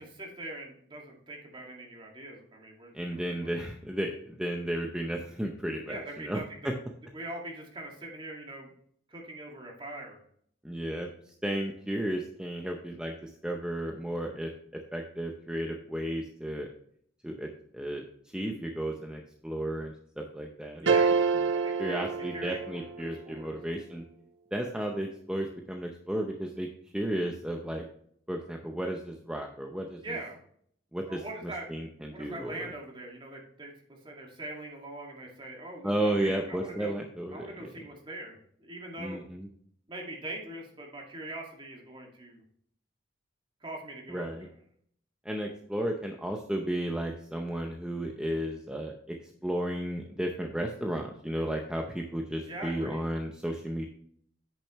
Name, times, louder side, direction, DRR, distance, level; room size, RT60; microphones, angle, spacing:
voice 1, 0.0-3.5 5.8-6.7 7.1-8.7 9.1-10.2 20.8-21.2 21.6-23.6 30.0-30.4 31.1-31.7 32.1-37.0 37.3-39.2 39.9-42.4 43.6-44.5 52.5-53.0, right 1 dB, 30° right, 0 dB, 2.1 m, -42 dB
voice 2, 2.9-6.0 6.2-6.7 10.6-14.5 14.9-16.7 17.2-18.0 18.3-20.9 21.8-24.0 24.5-26.7 26.9-27.9 28.3-30.0 30.9-32.7 35.8-37.7 39.0-39.5 44.1-44.5 45.2-49.2 49.4-53.8, right 1 dB, 5° right, 2 dB, 0.7 m, -33 dB
sound 1, 20.9-23.1, right 5 dB, 80° right, 0.6 m, -27 dB
8.6 x 6.9 x 3.1 m, 0.64 s
head